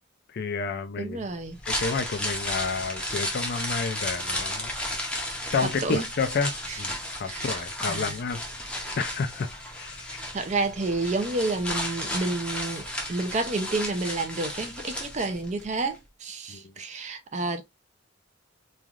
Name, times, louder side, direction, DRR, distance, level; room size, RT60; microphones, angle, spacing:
voice 1, 0.3-1.3 1.7-4.7 5.5-6.9 7.2-8.4 9.0-9.5 9.8-10.2 16.5-16.7, left 4 dB, 55° left, 0.4 m, -30 dB
voice 2, 1.0-1.6 5.6-6.0 6.7-6.8 7.2-8.2 10.1-17.6, right 3 dB, 40° right, 0.5 m, -30 dB
sound 1, 1.4-15.6 15.9-16.0, left 1 dB, 5° left, 0.6 m, -33 dB
3.2 x 2.4 x 2.4 m
head